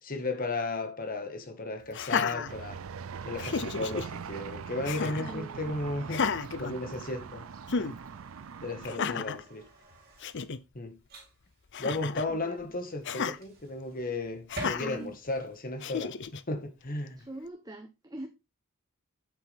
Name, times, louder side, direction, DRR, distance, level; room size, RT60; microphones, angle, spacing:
voice 1, 0.0-2.8 3.2-6.3 6.6-7.5 7.8-7.9 8.6-9.6 10.7-11.0 11.8-16.2 16.5-17.2, left 2 dB, 40° left, 1.7 m, -34 dB
Laughter, 1.9-3.0 3.4-4.1 4.8-5.3 6.1-7.3 7.7-7.9 8.8-9.4 9.9-10.0 10.2-10.6 11.7-12.3 13.0-13.4 14.5-15.0 15.8-16.4, left 5 dB, 60° left, 0.6 m, -32 dB
sound 1, 2.5-9.0, right 6 dB, 70° right, 0.5 m, -42 dB
voice 2, 5.2-5.7 9.0-9.3 12.3-12.6 13.1-13.2 14.8-15.1 17.2-18.3, right 1 dB, 20° right, 0.9 m, -43 dB
sound 2, 5.2-15.6, right 1 dB, 45° right, 2.8 m, -49 dB
8.4 x 8.3 x 3.5 m
head